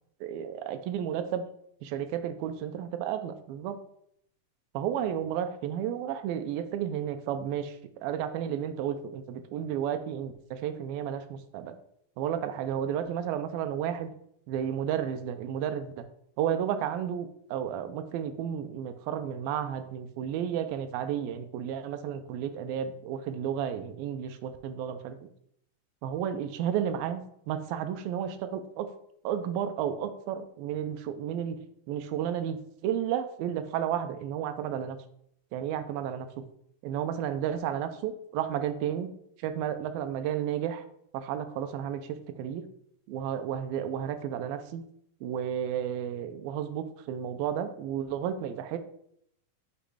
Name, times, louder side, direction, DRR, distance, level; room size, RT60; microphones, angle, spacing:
voice 1, 0.2-1.4 1.8-3.8 4.7-11.7 12.2-14.1 14.5-16.0 16.4-25.3 26.0-27.2 27.5-28.9 29.2-31.6 31.9-35.0 35.5-36.3 36.8-39.1 39.4-40.9 41.1-42.6 43.1-44.8 45.2-48.8, right 9 dB, 85° right, 9 dB, 2.3 m, -32 dB
8.1 x 3.0 x 4.8 m, 0.70 s
omnidirectional pair, 4.1 m